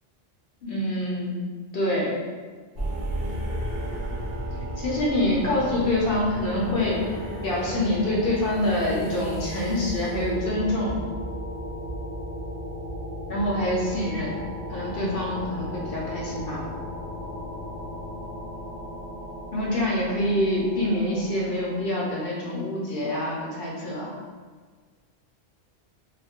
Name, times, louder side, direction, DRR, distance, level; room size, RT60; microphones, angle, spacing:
voice 1, 0.6-1.4 1.7-2.1 4.8-7.0 7.4-11.0 13.3-14.4 14.7-16.6 19.5-24.1, left 1 dB, 60° left, -5 dB, 0.9 m, -26 dB
sound 1, 2.8-21.9, equal, 40° right, 0.8 m, -34 dB
2.5 x 2.1 x 3.4 m, 1.5 s
omnidirectional pair, 1.2 m